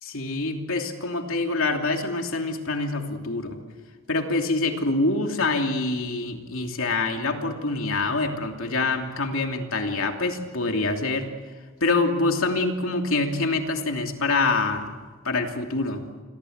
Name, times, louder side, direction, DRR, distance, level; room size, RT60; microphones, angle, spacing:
voice 1, 0.0-3.6 4.1-11.3 11.8-15.0 15.2-16.0, left 3 dB, 70° left, 3 dB, 2.9 m, -25 dB
28.5 x 22.5 x 8.0 m, 1.5 s
head